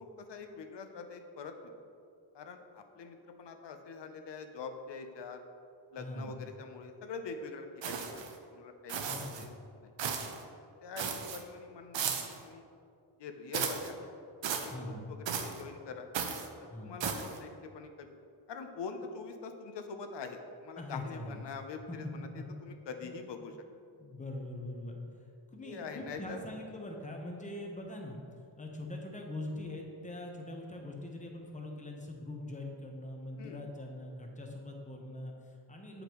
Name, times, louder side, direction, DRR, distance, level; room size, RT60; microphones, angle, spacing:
voice 1, 0.0-1.7 2.3-5.4 5.9-8.2 8.5-9.5 9.8-9.9 10.8-12.1 12.4-12.6 13.2-14.1 14.6-16.1 16.6-18.1 18.5-22.3 22.6-23.6 25.6-26.4 33.4-33.6, left 4 dB, 65° left, 6 dB, 0.6 m, -44 dB
voice 2, 6.0-6.4 8.9-9.5 14.7-15.1 16.6-17.1 20.8-21.4 21.9-22.1 22.6-22.7 23.0-23.1 24.0-25.0 25.5-28.2 28.6-36.0, left 1 dB, 15° left, 1 dB, 0.8 m, -42 dB
sound 1, 7.8-8.3 8.9-9.4 10.0-10.4 11.0-11.4 11.9-12.4 13.5-13.9 14.4-14.7 15.3-15.6 16.1-16.5 17.0-17.4, right 6 dB, 70° right, 0.7 m, -35 dB
7.7 x 5.1 x 3.0 m, 2.5 s
wide cardioid pair, 110°, 47 cm